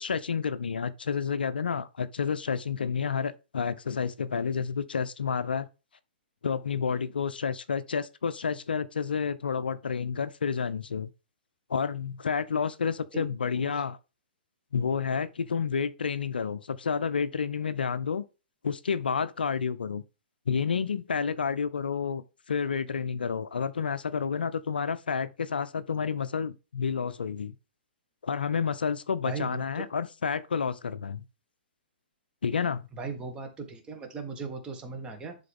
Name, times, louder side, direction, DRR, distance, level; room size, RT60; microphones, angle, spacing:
voice 1, 0.0-5.7 6.4-11.1 11.7-14.0 14.7-18.2 18.6-20.0 20.5-27.5 28.2-31.2 32.4-32.9, left 6 dB, 65° left, 0.4 m, -30 dB
voice 2, 29.2-29.9 32.9-35.4, right 4 dB, 15° right, 1.6 m, -38 dB
11.0 x 3.8 x 3.6 m
figure-of-eight pair, 115°, 5 cm